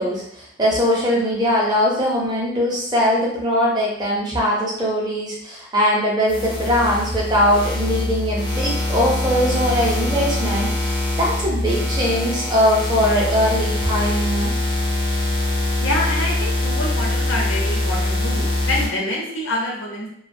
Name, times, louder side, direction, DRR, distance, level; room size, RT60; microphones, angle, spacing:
voice 1, 0.0-14.5, equal, 20° right, -4 dB, 0.6 m, -21 dB
sound 1, 6.3-18.9, left 1 dB, 25° left, 0.4 m, -23 dB
voice 2, 15.8-20.1, left 1 dB, 75° left, -2 dB, 0.7 m, -26 dB
2.4 x 2.2 x 2.6 m, 0.73 s
head